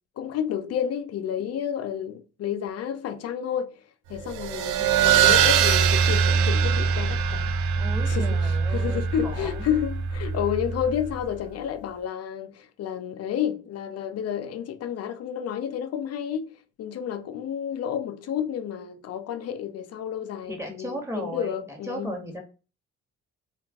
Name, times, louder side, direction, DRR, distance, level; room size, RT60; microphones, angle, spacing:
voice 1, 0.2-3.7 4.1-7.5 8.1-16.5 16.8-22.2, left 9 dB, 55° left, 0.5 m, -30 dB
sound 1, 4.2-11.3, right 7 dB, 75° right, 0.5 m, -23 dB
voice 2, 7.8-9.6 20.5-22.4, equal, 10° right, 1.1 m, -36 dB
2.3 x 2.2 x 3.5 m
supercardioid pair, 70°, 30 cm